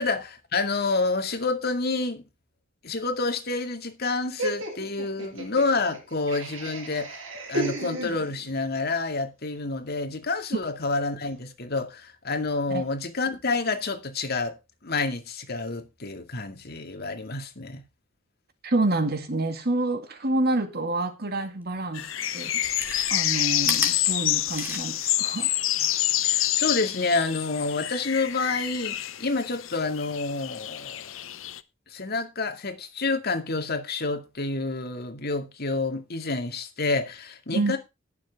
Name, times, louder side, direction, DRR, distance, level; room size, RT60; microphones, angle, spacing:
voice 1, 0.0-2.2 2.8-7.2 7.5-14.6 14.8-17.8 26.2-31.1 31.9-37.8, left 3 dB, 55° left, 2.2 m, -28 dB
Laughter, 4.4-8.6, right 1 dB, 85° right, 6.5 m, -34 dB
voice 2, 18.6-22.1 22.3-22.8 23.1-25.5 37.5-37.8, right 2 dB, 55° right, 2.2 m, -28 dB
Chewing mastication, 21.7-21.8 22.5-25.1 25.5-25.6, right 1 dB, 10° right, 2.9 m, -34 dB
sound 1, 21.9-31.6, left 13 dB, 90° left, 0.8 m, -27 dB
19.5 x 7.3 x 3.6 m
head